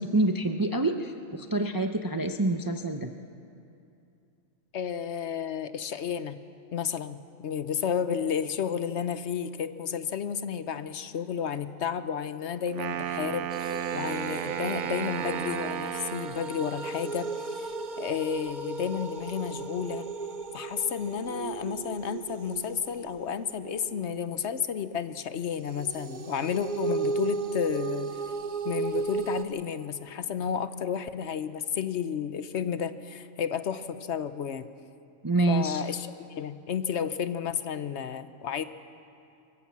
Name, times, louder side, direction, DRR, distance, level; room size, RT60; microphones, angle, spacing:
voice 1, 0.0-3.1 35.2-35.8, right 2 dB, 25° right, 6 dB, 0.4 m, -27 dB
voice 2, 4.7-6.4 6.7-20.1 20.5-28.1 28.6-34.7 35.5-38.6, left 8 dB, 65° left, 12 dB, 0.9 m, -32 dB
Wind instrument woodwind instrument, 12.7-16.6, right 9 dB, 65° right, 1.0 m, -33 dB
sound 1, 13.5-25.0 25.6-29.4, right 4 dB, 40° right, 0.9 m, -35 dB
24.0 x 15.5 x 7.3 m, 2.6 s
omnidirectional pair, 1.4 m